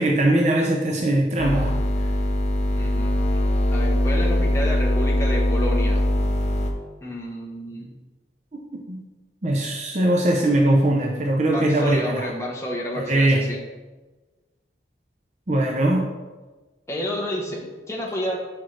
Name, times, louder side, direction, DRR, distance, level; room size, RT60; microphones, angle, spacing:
voice 1, 0.0-1.8 8.9-9.0 9.4-12.3 12.9-13.4 15.5-16.0, right 1 dB, 40° right, 0 dB, 0.6 m, -20 dB
sound 1, 1.4-6.7, left 1 dB, 40° left, 0.7 m, -21 dB
voice 2, 2.8-3.1 3.7-6.0 7.0-7.9 11.4-13.6 16.9-18.4, equal, 15° left, -2 dB, 0.9 m, -30 dB
6.2 x 5.6 x 3.2 m, 1.2 s
head